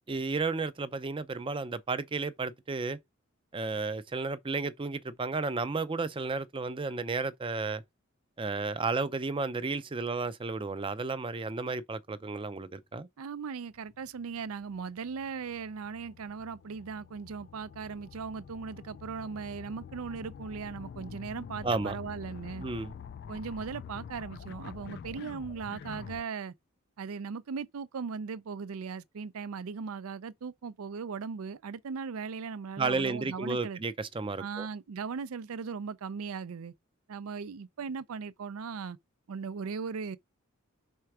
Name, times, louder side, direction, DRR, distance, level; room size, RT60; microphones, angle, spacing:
voice 1, 0.1-3.0 3.5-7.8 8.4-13.1 21.6-22.0 22.6-22.9 32.8-34.7, right 3 dB, 25° right, 0.5 m, -33 dB
voice 2, 13.2-22.6 23.3-26.5 27.0-33.8 34.4-36.7 37.1-39.0 39.3-40.2, right 5 dB, 80° right, 0.4 m, -38 dB
sound 1, 13.7-26.2, left 7 dB, 50° left, 0.3 m, -46 dB
5.6 x 4.4 x 4.8 m
head